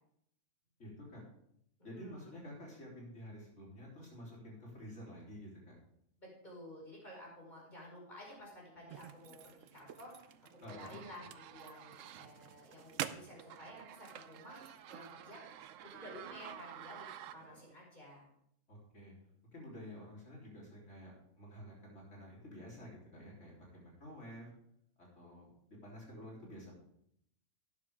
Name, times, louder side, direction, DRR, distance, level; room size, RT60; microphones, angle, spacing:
voice 1, 0.8-1.2 1.8-5.7 10.6-11.0 18.7-19.2 19.5-24.5 25.0-26.7, equal, 70° left, -3 dB, 3.8 m, -50 dB
voice 2, 1.8-2.4 6.2-10.1 10.5-15.4 15.8-18.3, left 1 dB, 35° left, -4 dB, 5.2 m, -53 dB
sound 1, 8.9-17.7, right 10 dB, 90° right, 1.0 m, -48 dB
12.0 x 9.6 x 3.5 m, 0.72 s
omnidirectional pair, 1.3 m